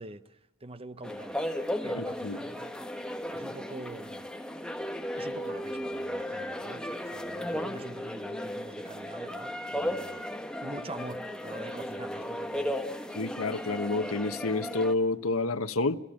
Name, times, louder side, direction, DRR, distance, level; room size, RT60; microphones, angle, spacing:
voice 1, 0.0-1.4 1.8-2.7 3.3-4.3 5.2-10.3 10.6-13.1, right 2 dB, 30° right, 0.8 m, -45 dB
sound 1, 1.0-14.9, left 1 dB, 5° left, 1.4 m, -35 dB
voice 2, 2.0-2.4 13.1-16.0, left 3 dB, 90° left, 1.1 m, -29 dB
26.5 x 15.5 x 8.7 m
head